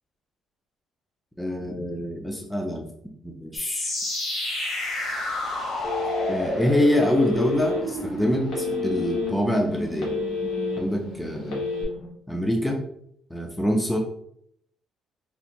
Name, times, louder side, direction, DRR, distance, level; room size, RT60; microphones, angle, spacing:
voice 1, 1.4-2.8 3.2-3.9 6.3-10.1 10.8-11.6 12.3-12.8 13.3-14.0, equal, 5° left, 1 dB, 0.3 m, -25 dB
sound 1, 3.5-12.1, left 1 dB, 45° left, 1.0 m, -31 dB
Telephone, 5.8-6.5 7.0-7.8 8.5-9.3 9.7-10.8 11.4-11.8, left 3 dB, 75° left, 1.2 m, -29 dB
3.3 x 2.5 x 2.8 m, 0.71 s
cardioid pair, 160°, 0 cm